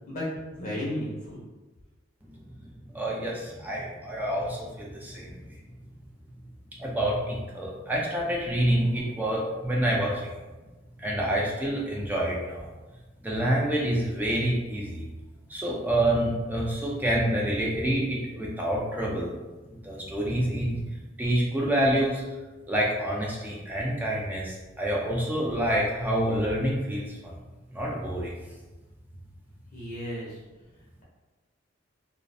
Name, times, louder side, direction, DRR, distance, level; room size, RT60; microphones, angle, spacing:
voice 1, 0.1-1.4 29.7-30.3, left 1 dB, 40° left, -6 dB, 0.6 m, -33 dB
voice 2, 2.9-5.4 6.8-10.4 11.0-12.7 13.2-15.0 15.5-19.3 19.8-20.9 21.2-22.2 22.7-27.3 27.7-28.3, right 1 dB, 10° right, -3 dB, 0.4 m, -27 dB
2.4 x 2.1 x 2.6 m, 1.2 s
head